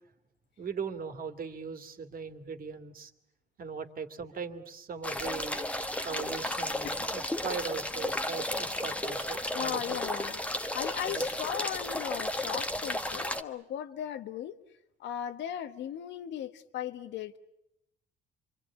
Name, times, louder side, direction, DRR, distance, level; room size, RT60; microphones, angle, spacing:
voice 1, 0.6-3.1 3.6-5.6 6.0-10.0 11.1-11.2, right 6 dB, 50° right, 7 dB, 2.5 m, -39 dB
sound 1, 5.0-13.4, left 1 dB, 5° left, 1.4 m, -33 dB
voice 2, 9.5-14.6 15.0-17.4, left 10 dB, 75° left, 11 dB, 1.4 m, -37 dB
27.5 x 24.5 x 8.7 m, 0.80 s
cardioid pair, 95°, 19 cm